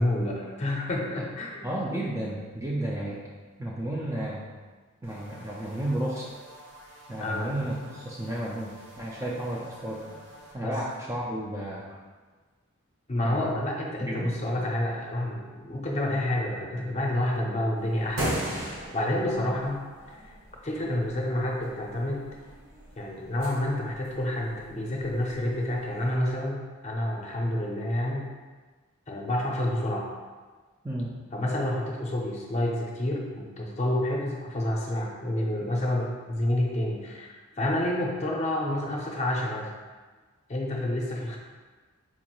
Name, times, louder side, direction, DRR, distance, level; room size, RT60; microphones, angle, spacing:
voice 1, 0.0-2.0 7.2-7.5 10.6-10.7 13.1-20.3 20.6-22.3 23.0-28.3 29.1-30.1 31.3-39.7 40.5-41.4, left 1 dB, 30° left, -2 dB, 0.6 m, -29 dB
voice 2, 1.6-3.3 3.6-4.5 5.0-6.3 7.1-10.2 10.5-12.0 13.2-13.5 14.0-14.4 30.8-31.2, right 1 dB, 15° right, -5 dB, 0.3 m, -32 dB
sound 1, 5.0-10.6, right 1 dB, 60° right, 0.8 m, -50 dB
sound 2, 17.8-26.2, equal, 75° right, 1.4 m, -39 dB
4.6 x 2.5 x 2.9 m, 1.4 s
head